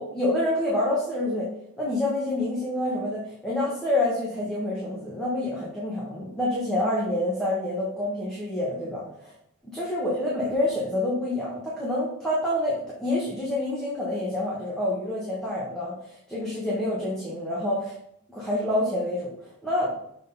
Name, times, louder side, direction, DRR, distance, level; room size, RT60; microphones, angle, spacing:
voice 1, 0.0-9.3 9.7-17.9 18.3-19.3 19.6-20.0, left 1 dB, 5° left, -7 dB, 1.3 m, -27 dB
6.6 x 3.8 x 3.9 m, 0.73 s
head